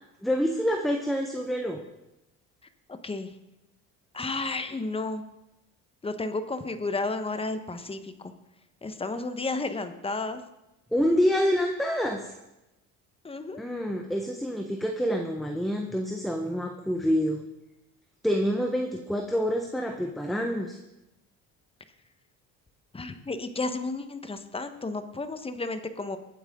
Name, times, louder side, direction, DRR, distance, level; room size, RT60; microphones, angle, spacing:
voice 1, 0.2-1.8 10.9-12.3 13.6-17.4 18.2-20.8, equal, ahead, 3 dB, 1.2 m, -27 dB
voice 2, 2.9-3.3 4.1-5.2 6.0-8.3 8.8-10.4 13.2-13.6 22.9-26.2, left 3 dB, 15° left, 9 dB, 1.2 m, -32 dB
22.0 x 9.2 x 3.8 m, 0.92 s
cardioid pair, 100°, 31 cm